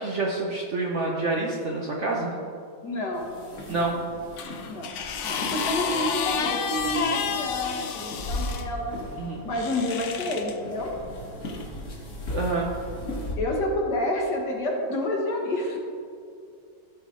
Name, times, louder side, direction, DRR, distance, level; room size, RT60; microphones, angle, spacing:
voice 1, 0.0-2.3 3.7-4.0 9.2-9.4 12.3-12.7, right 3 dB, 50° right, -2 dB, 1.0 m, -27 dB
voice 2, 2.8-3.3 3.7-4.1 4.7-5.0 5.2-9.0 9.4-10.9 13.4-15.8, left 1 dB, 60° left, 0 dB, 1.9 m, -29 dB
sound 1, 3.1-13.4, left 1 dB, 45° left, 1.8 m, -38 dB
sound 2, 4.4-8.7 9.5-10.5 11.5-11.6, left 6 dB, 80° left, 0.6 m, -30 dB
15.0 x 5.1 x 3.8 m, 2.4 s
omnidirectional pair, 2.1 m